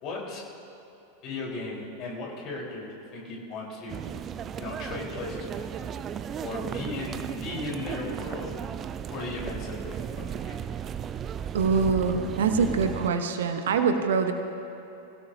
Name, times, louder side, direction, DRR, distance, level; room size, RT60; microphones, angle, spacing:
voice 1, 0.0-0.4 1.2-4.0 4.6-5.7 6.4-8.6 9.1-10.6, left 2 dB, 40° left, -3 dB, 4.1 m, -36 dB
sound 1, 3.9-13.1, right 8 dB, 25° right, 0.5 m, -35 dB
voice 2, 11.5-14.3, right 5 dB, 60° right, 7 dB, 1.0 m, -24 dB
25.5 x 17.0 x 2.8 m, 3.0 s
figure-of-eight pair, 90°, 0 cm